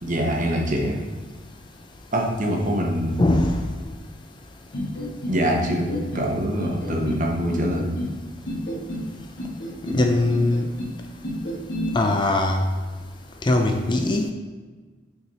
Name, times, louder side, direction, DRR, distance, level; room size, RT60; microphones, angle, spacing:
voice 1, 0.0-1.0 2.1-3.3 5.3-8.0, equal, 45° right, 0 dB, 1.0 m, -24 dB
voice 2, 3.2-3.5 9.8-10.7 11.9-12.6 13.4-14.3, left 2 dB, 25° left, 4 dB, 0.5 m, -20 dB
sound 1, 4.7-5.4 5.7-6.3 6.6-7.2 7.5-8.1 8.5-9.1 9.4-10.0 10.3-10.9 11.2-11.9, left 1 dB, 70° left, 1.9 m, -30 dB
5.8 x 4.5 x 4.3 m, 1.4 s
head